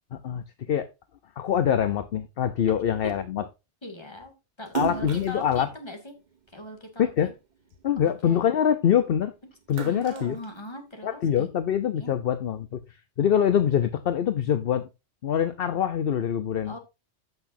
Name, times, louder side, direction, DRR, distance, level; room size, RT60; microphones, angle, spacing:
voice 1, 0.1-0.9 1.4-3.4 4.7-5.7 7.0-7.3 7.8-9.3 9.7-10.4 11.0-12.8 13.2-14.9 15.2-16.7, left 9 dB, 60° left, 0.9 m, -24 dB
voice 2, 3.8-6.1 6.5-7.3 8.0-8.4 9.7-11.5 12.0-12.1 16.6-16.8, left 1 dB, 25° left, 2.4 m, -40 dB
Splash splatter, 4.6-7.2 7.7-9.1 9.5-11.2, right 9 dB, 45° right, 0.8 m, -37 dB
14.5 x 6.1 x 2.7 m
omnidirectional pair, 1.1 m